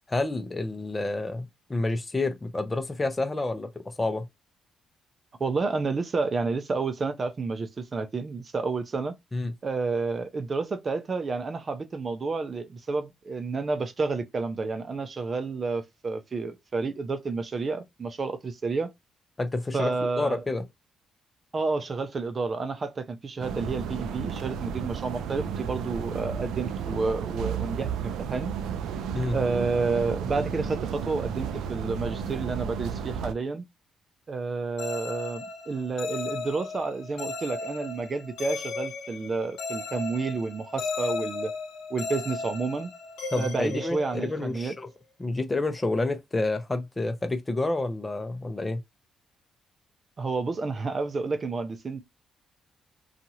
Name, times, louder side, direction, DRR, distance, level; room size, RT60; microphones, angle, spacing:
voice 1, 0.1-4.3 9.3-9.5 19.4-20.6 29.1-29.4 43.3-44.9 45.2-48.8, left 2 dB, 20° left, 0.7 m, -29 dB
voice 2, 5.4-9.1 9.6-18.9 19.7-20.4 21.5-28.5 29.3-33.7 34.3-41.5 41.9-42.9 43.3-44.7 50.2-52.0, right 4 dB, 40° right, 0.6 m, -30 dB
sound 1, 23.4-33.3, right 7 dB, 85° right, 0.4 m, -33 dB
sound 2, 34.8-44.6, left 4 dB, 85° left, 0.8 m, -35 dB
2.8 x 2.4 x 2.7 m
cardioid pair, 90°, 0 cm